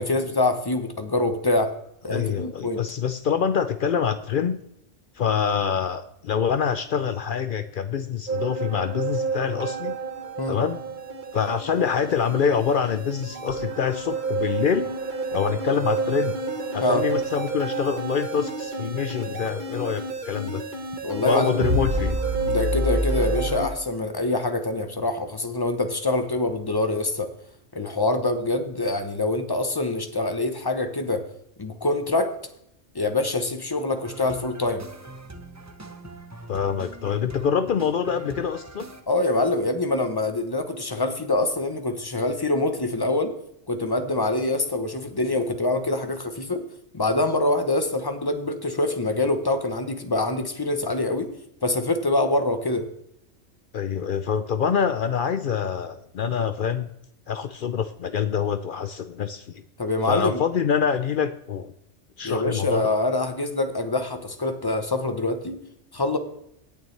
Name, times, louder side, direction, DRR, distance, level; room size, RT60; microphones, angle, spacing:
voice 1, 0.0-1.7 2.0-2.8 10.4-10.6 16.8-17.0 21.0-21.6 22.5-27.3 27.7-31.2 31.6-32.3 32.9-34.8 39.1-43.3 43.7-46.6 46.9-51.3 51.6-52.9 59.8-60.4 62.2-65.6 65.9-66.2, left 2 dB, 20° left, 8 dB, 0.8 m, -25 dB
voice 2, 2.1-4.6 5.2-10.0 10.5-10.8 11.3-14.9 15.3-16.4 16.7-20.6 21.2-22.2 36.5-38.9 53.7-56.9 57.3-59.6 60.0-61.7 62.2-62.9, left 7 dB, 60° left, 10 dB, 0.6 m, -25 dB
sound 1, 8.3-23.7, right 2 dB, 40° right, 1.1 m, -29 dB
sound 2, 33.9-39.0, right 2 dB, 15° right, 0.6 m, -42 dB
17.0 x 6.8 x 3.3 m, 0.76 s
omnidirectional pair, 1.3 m